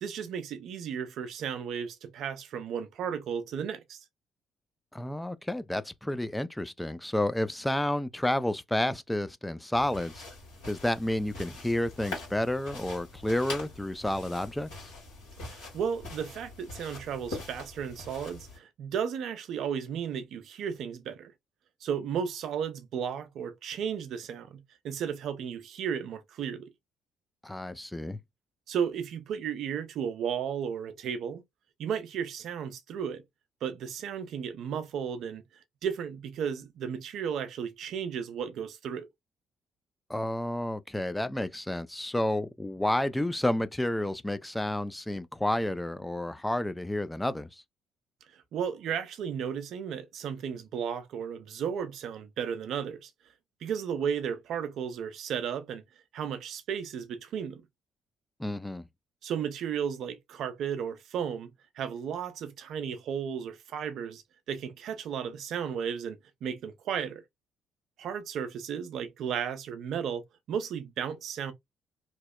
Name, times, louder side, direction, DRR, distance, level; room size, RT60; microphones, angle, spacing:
voice 1, 0.0-4.0 15.4-21.3 21.8-26.7 28.7-31.4 31.8-33.2 33.6-35.4 35.8-39.1 48.3-53.1 53.6-55.8 56.1-57.6 59.2-61.5 61.8-64.2 64.5-67.2 68.0-71.5, right 7 dB, 65° right, 0.4 m, -34 dB
voice 2, 4.9-10.2 10.7-14.9 27.4-28.2 40.1-47.6 58.4-58.8, left 1 dB, 10° left, 0.3 m, -30 dB
sound 1, 9.7-18.6, left 2 dB, 80° left, 1.4 m, -43 dB
2.8 x 2.0 x 2.2 m
hypercardioid pair, 50°, 0 cm